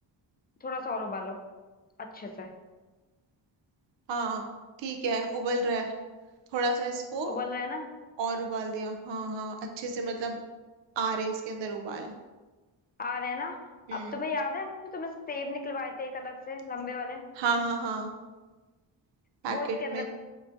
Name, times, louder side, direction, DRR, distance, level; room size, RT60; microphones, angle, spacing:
voice 1, 0.6-1.4 2.0-2.5 7.2-7.9 13.0-13.6 13.9-17.2 19.4-20.1, left 3 dB, 20° left, 4 dB, 0.3 m, -35 dB
voice 2, 4.1-4.5 4.8-5.9 6.5-7.4 8.2-10.4 11.0-12.1 13.9-14.2 17.4-18.1 19.4-20.1, right 3 dB, 65° right, 4 dB, 0.5 m, -31 dB
4.6 x 2.6 x 2.5 m, 1.3 s
cardioid pair, 90°, 47 cm